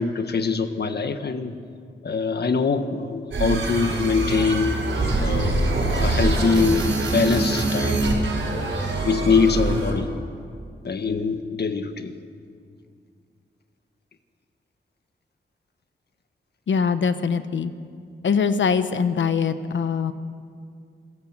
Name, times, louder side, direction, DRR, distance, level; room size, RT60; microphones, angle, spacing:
voice 1, 0.0-1.5 2.0-4.7 5.2-6.8 7.1-8.0 8.5-8.6 9.0-10.1 10.8-12.2, left 4 dB, 60° left, 8 dB, 1.5 m, -23 dB
sound 1, 3.3-10.0, right 2 dB, 80° right, 5.5 m, -24 dB
voice 2, 16.7-17.7 18.2-20.1, left 6 dB, 75° left, 11 dB, 1.2 m, -22 dB
27.0 x 16.5 x 7.5 m, 2.3 s
wide cardioid pair, 105°, 19 cm